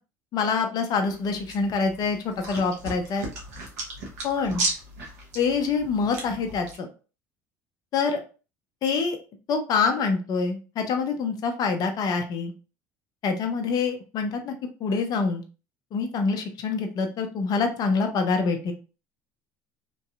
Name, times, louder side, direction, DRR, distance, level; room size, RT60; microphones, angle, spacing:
voice 1, 0.3-3.3 4.2-4.6 5.3-6.9 7.9-8.2 8.8-9.2 9.5-12.5 13.2-14.5 14.8-15.4 15.9-18.7, left 5 dB, 50° left, 5 dB, 0.6 m, -26 dB
sound 1, 1.0-6.8, right 2 dB, 85° right, 1.0 m, -35 dB
3.0 x 2.7 x 2.4 m, 0.34 s
hypercardioid pair, 70°, 8 cm